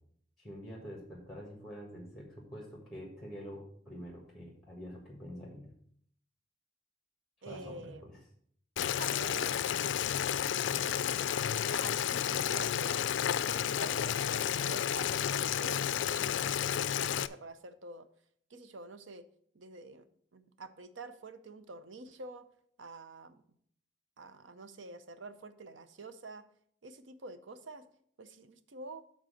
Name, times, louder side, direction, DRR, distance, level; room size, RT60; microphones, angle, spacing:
voice 1, 0.4-5.7 7.4-8.2, equal, ahead, -1 dB, 1.5 m, -46 dB
voice 2, 7.4-8.2 9.0-9.6 10.8-11.5 11.7-18.1 18.5-19.3 19.5-20.1 20.3-22.5 22.8-23.4 24.2-26.5 26.8-27.9 28.2-29.1, right 3 dB, 80° right, 11 dB, 0.7 m, -48 dB
Boiling, 8.8-17.3, left 9 dB, 75° left, 0.3 m, -31 dB
7.6 x 4.1 x 6.4 m, 0.64 s
head